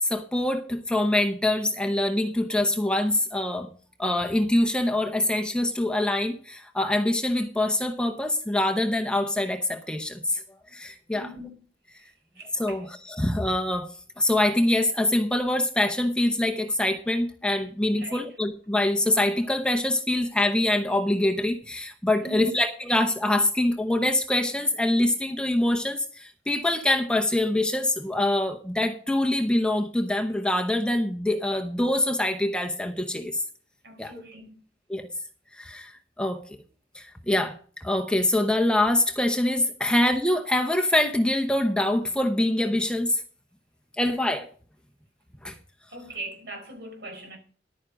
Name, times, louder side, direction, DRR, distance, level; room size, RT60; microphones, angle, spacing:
voice 1, 0.0-3.7 4.0-10.4 10.7-11.3 12.6-13.9 14.2-33.4 34.0-34.1 34.9-35.1 35.5-36.4 36.9-43.2 44.0-44.5 45.4-45.5, left 1 dB, 5° left, 0.8 m, -24 dB
voice 2, 11.1-11.6 12.3-12.8 18.0-18.3 22.2-22.6 33.8-34.6 45.9-47.4, right 2 dB, 60° right, 5.1 m, -40 dB
11.5 x 9.4 x 5.1 m
head